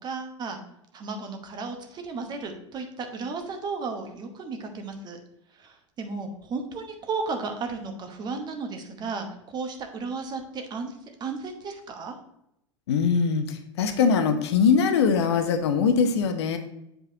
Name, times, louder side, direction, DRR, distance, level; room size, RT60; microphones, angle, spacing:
voice 1, 0.0-0.6 0.9-5.2 5.6-10.9 11.2-12.1, right 4 dB, 25° right, 5 dB, 1.0 m, -34 dB
voice 2, 12.9-13.4 13.8-16.6, left 6 dB, 60° left, 7 dB, 0.8 m, -21 dB
7.7 x 4.7 x 2.8 m, 0.79 s
figure-of-eight pair, 90°, 16 cm